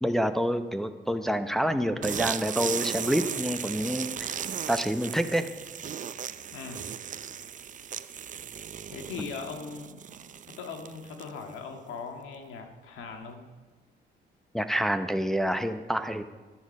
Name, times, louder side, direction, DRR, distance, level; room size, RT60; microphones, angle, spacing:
voice 1, 0.0-4.4 4.7-5.5 14.5-16.2, equal, ahead, 8 dB, 0.7 m, -27 dB
sound 1, 2.0-11.5, right 8 dB, 40° right, 0.5 m, -36 dB
voice 2, 6.5-6.9 8.9-10.0 10.6-13.5, left 5 dB, 85° left, 4 dB, 1.8 m, -40 dB
11.5 x 10.0 x 5.4 m, 1.3 s
cardioid pair, 90°, 20 cm